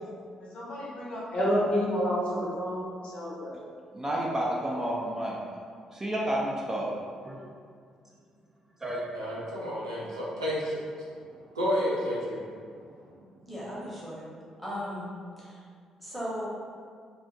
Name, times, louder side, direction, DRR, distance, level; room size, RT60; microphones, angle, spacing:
voice 1, 0.5-3.5, equal, 45° left, -6 dB, 0.7 m, -29 dB
voice 2, 3.9-5.5 5.9-6.9 7.2-7.4 8.8-9.0, right 1 dB, 20° right, -4 dB, 0.4 m, -30 dB
voice 3, 9.1-11.1 11.5-12.5, equal, 85° right, -7 dB, 0.4 m, -31 dB
voice 4, 13.5-14.3 14.6-15.1 15.4-15.6 16.0-16.5, equal, ahead, -7 dB, 0.9 m, -36 dB
2.4 x 2.1 x 2.5 m, 2.1 s
figure-of-eight pair, 40°, 2 cm